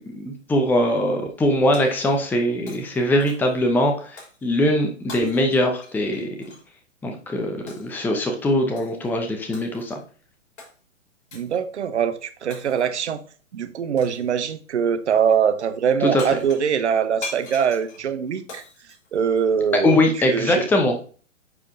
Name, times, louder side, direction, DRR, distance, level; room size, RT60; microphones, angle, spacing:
voice 1, 0.1-6.3 7.0-10.0 16.0-16.2 19.8-21.0, left 1 dB, 5° left, 0.7 m, -21 dB
Shatter, 1.7-2.4 2.7-3.6 4.2-4.4 5.1-6.7 7.7-8.0 8.8-9.1 9.5-10.0 10.6-10.7 11.3-11.6 12.5-13.0 14.0-14.3 15.9-16.0 16.2-19.8, left 3 dB, 60° left, 3.8 m, -41 dB
voice 2, 11.3-13.2 13.5-18.6 19.1-20.0 20.3-20.7, right 7 dB, 60° right, 1.0 m, -23 dB
9.4 x 4.9 x 2.7 m
figure-of-eight pair, 115°, 38 cm